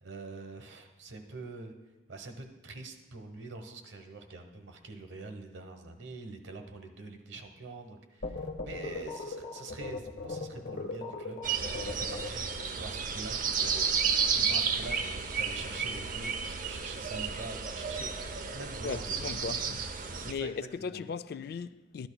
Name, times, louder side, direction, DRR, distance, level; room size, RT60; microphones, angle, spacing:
voice 1, 0.0-1.7 2.1-19.6 19.9-21.0, right 3 dB, 75° right, 1.0 m, -45 dB
sound 1, 8.2-12.6, left 3 dB, 70° left, 1.1 m, -39 dB
sound 2, 11.4-20.3, right 6 dB, 45° right, 0.6 m, -32 dB
voice 2, 18.8-22.1, left 5 dB, 55° left, 0.3 m, -38 dB
13.0 x 10.5 x 2.2 m
head